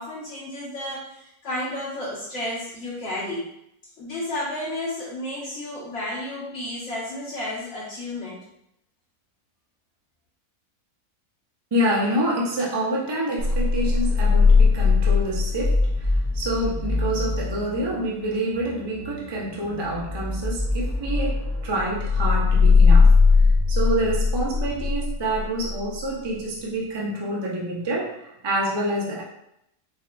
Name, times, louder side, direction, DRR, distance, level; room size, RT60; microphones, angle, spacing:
voice 1, 0.0-3.5 4.0-8.4, left 1 dB, 55° left, -8 dB, 1.0 m, -32 dB
voice 2, 11.7-23.1 23.7-29.2, right 1 dB, 30° right, -4 dB, 0.4 m, -27 dB
sound 1, 13.4-26.0, left 4 dB, 35° left, 0.6 m, -21 dB
5.0 x 2.6 x 2.2 m, 0.79 s
omnidirectional pair, 1.6 m